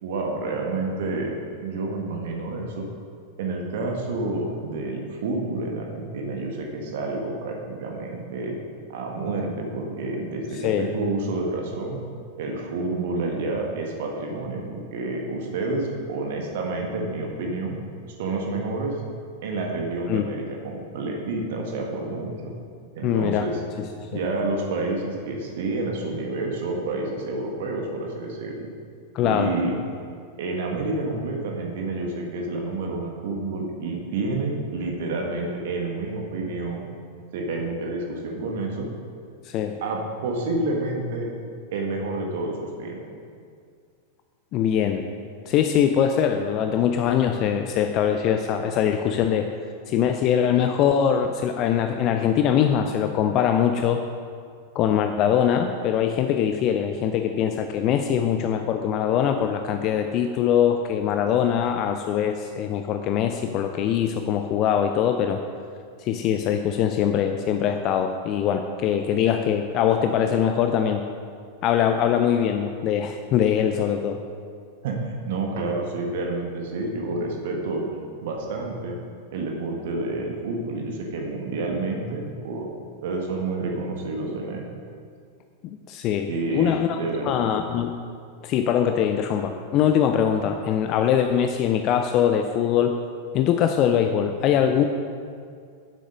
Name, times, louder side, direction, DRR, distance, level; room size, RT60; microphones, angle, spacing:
voice 1, 0.0-1.3 1.6-2.9 3.4-8.6 8.9-12.0 12.4-17.8 18.2-18.9 19.4-22.5 22.9-23.6 24.1-28.7 29.2-29.8 30.4-36.9 37.3-38.9 39.8-41.3 41.7-43.0 74.8-77.8 78.2-78.9 79.3-82.7 83.0-84.8 86.3-87.4, right 2 dB, 55° right, 1 dB, 1.4 m, -29 dB
voice 2, 10.5-10.9 20.1-20.3 23.0-23.5 23.8-24.2 29.1-29.5 39.4-39.8 44.5-45.0 45.5-49.5 49.9-54.0 54.7-65.4 66.0-71.0 71.6-74.2 85.6-87.9 88.4-92.9 93.3-94.8, left 9 dB, 40° left, 6 dB, 0.5 m, -22 dB
9.1 x 7.8 x 5.2 m, 2.2 s
figure-of-eight pair, 90°, 0 cm